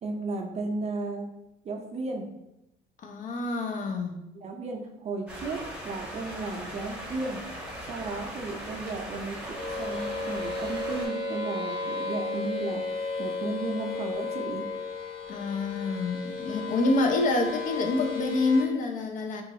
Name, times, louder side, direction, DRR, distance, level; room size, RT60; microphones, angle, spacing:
voice 1, 0.0-1.3 1.6-2.3 4.3-7.4 7.8-12.8 13.2-14.6, right 3 dB, 40° right, 2 dB, 0.5 m, -34 dB
voice 2, 3.0-4.2 15.3-19.4, left 2 dB, 50° left, 4 dB, 0.5 m, -27 dB
sound 1, 5.3-11.1, equal, 5° right, 0.8 m, -39 dB
sound 2, 9.5-18.6, left 3 dB, 30° left, 1.1 m, -34 dB
2.9 x 2.4 x 2.7 m, 0.87 s
cardioid pair, 110°, 17 cm